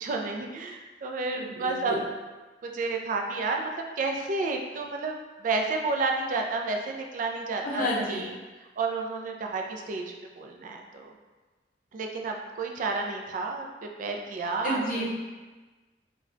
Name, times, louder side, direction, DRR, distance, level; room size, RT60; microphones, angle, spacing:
voice 1, 0.0-2.0 2.6-5.1 5.4-8.3 8.8-10.0 10.4-11.1 11.9-15.1, right 3 dB, 45° right, 2 dB, 0.3 m, -31 dB
voice 2, 1.4-2.0 7.6-8.2 14.6-15.1, equal, 50° left, -5 dB, 0.6 m, -30 dB
2.2 x 2.1 x 3.6 m, 1.3 s
head